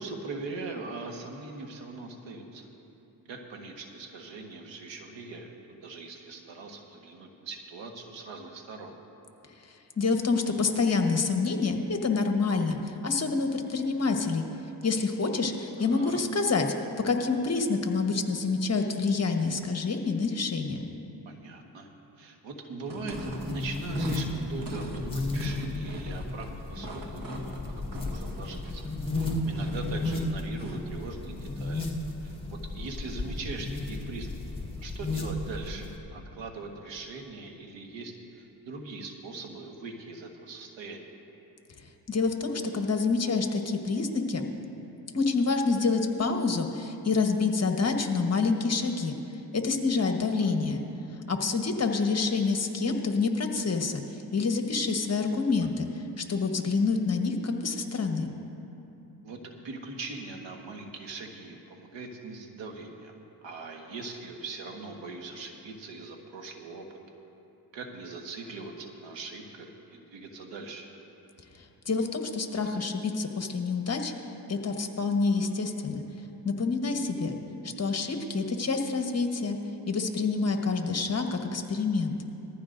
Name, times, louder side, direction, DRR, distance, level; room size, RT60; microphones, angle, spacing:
voice 1, 0.0-2.7 3.3-8.9 15.8-16.2 21.2-21.9 22.2-28.8 29.1-31.9 32.2-32.3 32.7-34.4 34.8-41.0 49.9-50.0 50.4-50.5 59.2-63.1 63.4-66.9 67.7-70.9, right 3 dB, 80° right, 3 dB, 1.5 m, -41 dB
voice 2, 10.0-14.4 14.8-16.7 17.0-20.9 42.1-44.4 45.1-49.2 49.5-50.8 51.3-54.0 54.3-58.3 71.9-74.1 74.5-76.0 76.4-77.4 77.8-79.6 79.9-82.2, left 4 dB, 35° left, 4 dB, 1.2 m, -27 dB
sound 1, 22.8-30.9, equal, 50° right, 1.6 m, -40 dB
sound 2, 23.1-36.0, left 2 dB, 10° left, 2.0 m, -34 dB
19.0 x 14.5 x 2.6 m, 2.9 s
cardioid pair, 75°, 44 cm